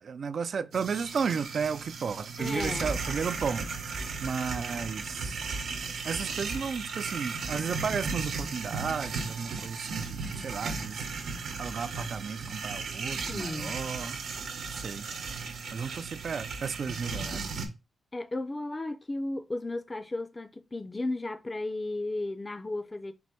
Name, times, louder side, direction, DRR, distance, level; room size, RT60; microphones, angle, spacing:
voice 1, 0.0-5.4 6.0-11.1 11.6-14.2 14.7-15.0 15.7-17.6, right 6 dB, 60° right, 0.3 m, -34 dB
sound 1, 0.7-17.7, right 4 dB, 85° right, 0.9 m, -36 dB
voice 2, 2.4-3.0 13.3-13.9 18.1-23.1, left 2 dB, 25° left, 0.3 m, -34 dB
4.4 x 2.5 x 4.4 m
cardioid pair, 100°, 0 cm